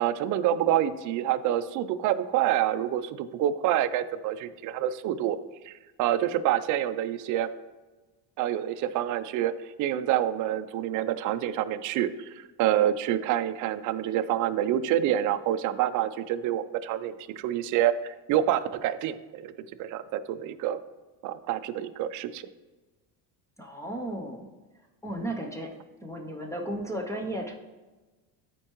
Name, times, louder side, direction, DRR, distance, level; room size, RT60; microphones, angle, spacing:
voice 1, 0.0-5.4 5.6-7.5 8.4-19.5 19.8-20.8 21.2-22.4, right 11 dB, 45° right, 11 dB, 0.4 m, -27 dB
voice 2, 23.6-24.5 25.0-25.7 26.0-27.5, right 1 dB, 5° left, 2 dB, 0.5 m, -34 dB
12.5 x 4.5 x 3.0 m, 1.2 s
cardioid pair, 140°, 45 cm